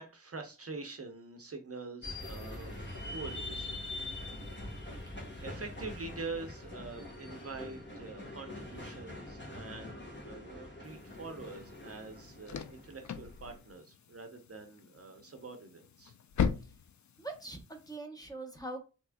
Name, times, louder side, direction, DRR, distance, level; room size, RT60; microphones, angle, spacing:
voice 1, 0.0-2.8 3.1-3.8 5.4-16.1, right 3 dB, 50° right, 5 dB, 0.7 m, -45 dB
sound 1, 2.0-13.6, left 1 dB, 35° left, 1.2 m, -44 dB
sound 2, 10.8-18.0, left 7 dB, 65° left, 0.4 m, -40 dB
voice 2, 17.2-18.8, right 2 dB, 10° left, 3 dB, 0.9 m, -43 dB
3.4 x 3.0 x 2.2 m, 0.31 s
wide cardioid pair, 60°, 31 cm